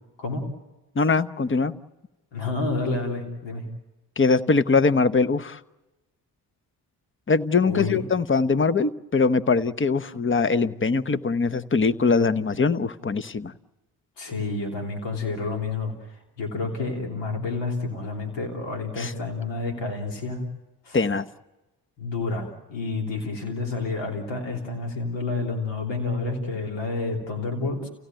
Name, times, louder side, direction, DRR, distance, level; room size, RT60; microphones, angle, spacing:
voice 1, 1.0-1.7 4.2-5.6 7.3-13.5 19.0-19.1 20.9-21.3, left 4 dB, 30° left, 13 dB, 1.0 m, -22 dB
voice 2, 2.3-3.6 7.6-8.0 14.2-20.4 20.8-21.0 22.0-27.9, left 3 dB, 85° left, 2 dB, 3.3 m, -29 dB
29.5 x 17.0 x 9.1 m, 1.1 s
supercardioid pair, 50°, 43 cm